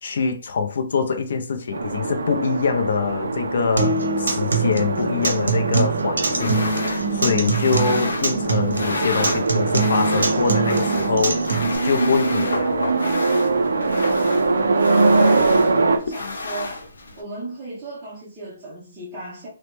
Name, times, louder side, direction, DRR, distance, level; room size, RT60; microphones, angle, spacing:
voice 1, 0.0-11.4 11.8-13.0, left 5 dB, 40° left, 0.4 m, -24 dB
sound 1, 1.7-16.0, right 3 dB, 70° right, 0.4 m, -23 dB
Acoustic guitar, 3.8-11.8, right 4 dB, 90° right, 0.8 m, -24 dB
sound 2, 6.2-17.2, left 2 dB, 75° left, 0.8 m, -31 dB
voice 2, 15.2-16.8 17.2-19.5, right 2 dB, 10° right, 0.5 m, -35 dB
3.1 x 2.0 x 3.0 m
hypercardioid pair, 180°, 0 cm